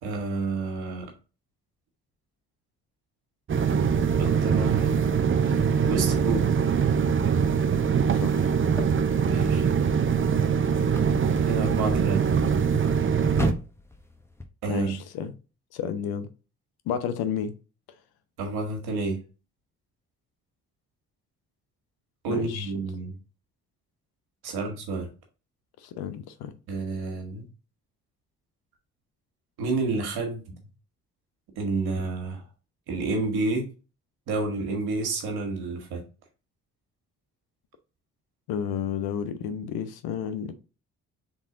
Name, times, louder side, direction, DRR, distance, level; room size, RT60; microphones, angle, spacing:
voice 1, 0.0-1.1 4.2-5.0 5.4-6.5 9.2-9.7 11.5-12.3 14.6-15.0 18.4-19.2 22.2-23.1 24.4-25.1 26.7-27.5 29.6-30.6 31.6-32.4 32.9-33.7 34.3-36.0, right 3 dB, 85° right, 1.4 m, -29 dB
sound 1, 3.5-13.5, right 6 dB, 35° right, 0.6 m, -23 dB
voice 2, 8.1-8.6 14.7-15.3 15.7-16.3 16.9-17.5 22.3-22.7 25.8-26.5 38.5-40.5, left 8 dB, 80° left, 0.7 m, -31 dB
sound 2, 8.6-14.5, left 1 dB, 5° left, 1.0 m, -37 dB
4.0 x 3.6 x 3.7 m
supercardioid pair, 50°, 37 cm